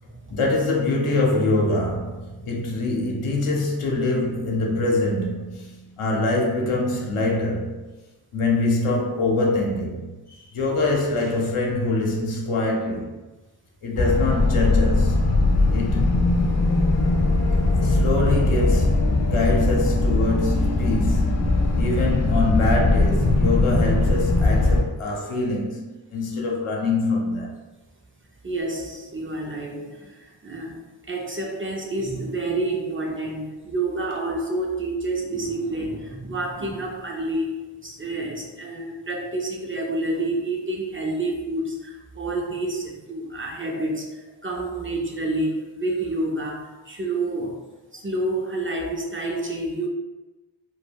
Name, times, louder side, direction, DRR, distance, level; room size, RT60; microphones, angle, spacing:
voice 1, 0.3-7.8 8.3-13.2 13.8-15.2 15.7-16.1 17.5-21.5 21.8-27.6, left 2 dB, 90° left, 0.7 m, -24 dB
sound 1, 14.0-24.8, left 2 dB, 35° left, 0.4 m, -20 dB
voice 2, 28.4-47.6 47.9-49.9, right 2 dB, 25° right, 0.4 m, -29 dB
2.2 x 2.2 x 3.3 m
cardioid pair, 50°, 49 cm